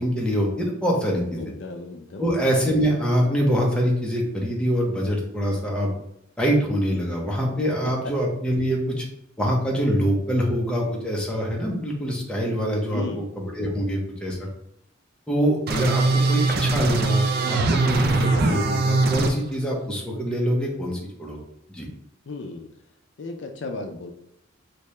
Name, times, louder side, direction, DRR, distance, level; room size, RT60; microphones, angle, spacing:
voice 1, 0.0-1.4 2.2-6.0 6.4-9.0 9.4-13.0 13.4-14.5 15.3-21.4 21.7-21.9, equal, 5° left, -3 dB, 0.7 m, -24 dB
voice 2, 1.4-2.3 12.9-13.3 22.3-22.7 23.2-24.1, left 3 dB, 65° left, 4 dB, 0.4 m, -34 dB
sound 1, 15.7-19.3, right 3 dB, 50° right, 0.4 m, -21 dB
3.3 x 2.8 x 3.2 m, 0.78 s
head